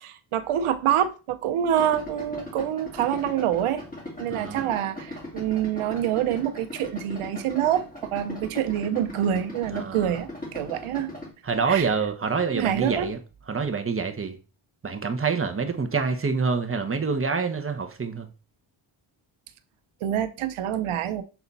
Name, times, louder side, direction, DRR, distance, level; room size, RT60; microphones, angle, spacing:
voice 1, 0.0-3.8 4.2-11.1 11.7-11.9 12.5-13.1 20.0-21.2, right 10 dB, 90° right, 0.9 m, -26 dB
Idling, 1.7-11.3, left 1 dB, 15° left, 2.9 m, -39 dB
voice 2, 4.3-4.8 9.7-10.1 11.4-13.2 13.5-14.4 14.8-18.3, right 5 dB, 25° right, 1.1 m, -26 dB
7.2 x 4.0 x 4.1 m
cardioid pair, 100°, 49 cm